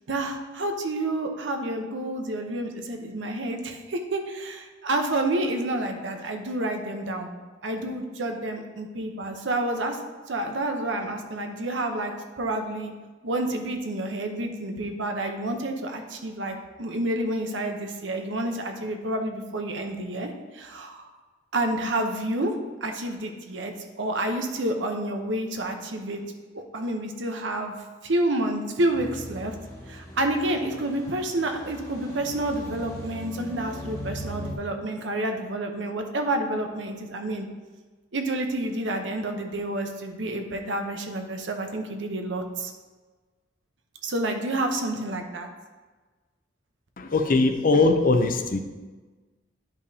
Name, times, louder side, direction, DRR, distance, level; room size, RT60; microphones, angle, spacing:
voice 1, 0.1-7.3 7.6-10.0 10.3-12.9 13.2-21.1 21.5-22.5 22.8-26.2 26.5-27.7 28.0-29.5 29.9-37.5 38.1-42.7 44.0-45.5, right 1 dB, 75° right, 4 dB, 0.9 m, -29 dB
sound 1, 28.9-34.5, equal, 15° left, 1.7 m, -39 dB
voice 2, 47.0-48.6, left 3 dB, 50° left, 6 dB, 0.6 m, -21 dB
10.5 x 5.4 x 2.8 m, 1.3 s
head